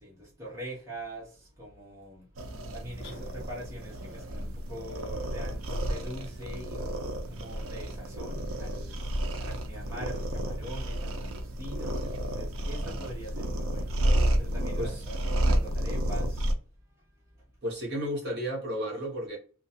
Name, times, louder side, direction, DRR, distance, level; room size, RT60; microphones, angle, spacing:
voice 1, 0.0-2.3 2.7-8.9 9.4-13.9 14.4-16.5, equal, 15° right, 0.8 m, -43 dB
sound 1, 2.4-16.5, right 1 dB, 65° right, 0.4 m, -31 dB
sound 2, 3.0-3.9, left 2 dB, 55° left, 0.8 m, -49 dB
voice 2, 17.6-19.4, equal, 50° right, 0.9 m, -33 dB
2.2 x 2.2 x 2.7 m
head